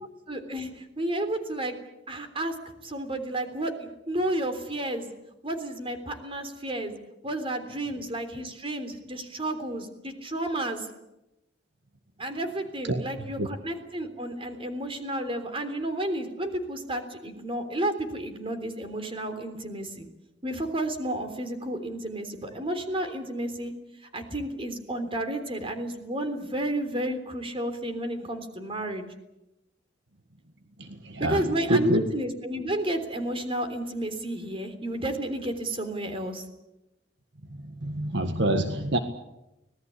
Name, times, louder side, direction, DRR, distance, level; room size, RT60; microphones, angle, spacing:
voice 1, 0.3-1.8 2.1-2.5 2.8-5.1 5.4-6.9 7.2-10.9 12.2-20.1 20.4-23.7 24.1-29.0 31.2-36.4, right 1 dB, 30° right, 3.5 m, -31 dB
voice 2, 30.8-32.0 37.6-39.0, right 1 dB, 65° right, 1.7 m, -26 dB
25.5 x 19.0 x 8.5 m
head